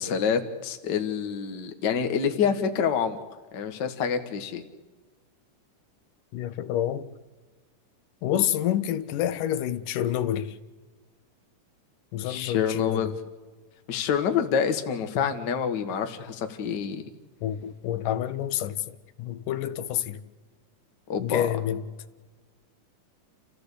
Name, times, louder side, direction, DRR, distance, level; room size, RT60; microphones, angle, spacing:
voice 1, 0.0-3.2 3.5-4.6 12.2-13.2 13.9-17.0 21.1-21.5, left 7 dB, 45° left, 1.6 m, -27 dB
voice 2, 6.3-7.1 8.2-10.5 12.1-13.1 17.4-20.2 21.2-21.8, left 11 dB, 90° left, 2.5 m, -28 dB
29.5 x 15.0 x 8.3 m
omnidirectional pair, 3.6 m